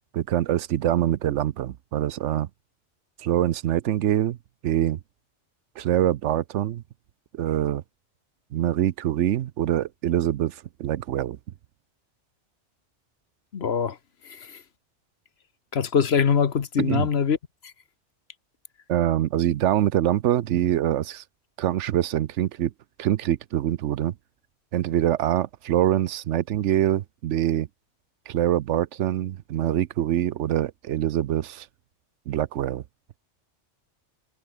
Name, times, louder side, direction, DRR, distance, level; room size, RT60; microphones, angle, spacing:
voice 1, 0.1-2.5 3.2-4.4 4.6-5.0 5.8-6.8 7.3-7.8 8.5-11.4 16.8-17.1 18.9-21.2 21.6-22.7 23.0-24.1 24.7-27.7 28.3-31.7 32.3-32.8, right 12 dB, 80° right, 1.0 m, -24 dB
voice 2, 13.5-14.0 14.3-14.6 15.7-17.4, left 7 dB, 60° left, 1.3 m, -23 dB
omnidirectional pair, 1.2 m